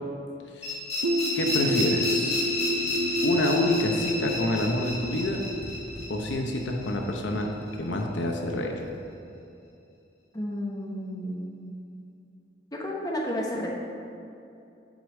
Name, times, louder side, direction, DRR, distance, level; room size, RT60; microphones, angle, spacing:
sound 1, 0.6-7.4, left 2 dB, 35° left, 2.1 m, -31 dB
sound 2, 1.0-6.6, equal, 80° right, 0.7 m, -31 dB
voice 1, 1.3-2.4 3.2-5.4 6.1-7.5 7.8-8.9, left 1 dB, 75° left, 2 dB, 0.8 m, -27 dB
sound 3, 2.7-9.2, equal, 25° right, 1.2 m, -45 dB
voice 2, 10.3-11.7 12.7-13.7, equal, 20° left, -2 dB, 1.1 m, -32 dB
7.6 x 4.9 x 7.2 m, 2.6 s
head